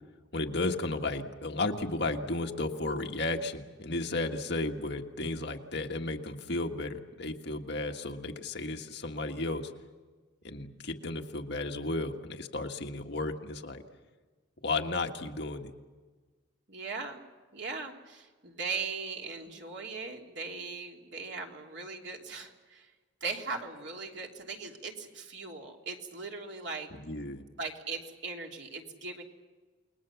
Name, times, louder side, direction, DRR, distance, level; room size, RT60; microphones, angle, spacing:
voice 1, 0.3-9.7 10.4-13.8 14.6-15.7 26.9-27.4, left 2 dB, 55° left, 4 dB, 1.7 m, -34 dB
voice 2, 16.7-17.2 17.5-22.9 23.2-26.9 27.6-29.2, right 4 dB, 60° right, 1 dB, 3.1 m, -39 dB
29.5 x 20.5 x 7.1 m, 1.4 s
head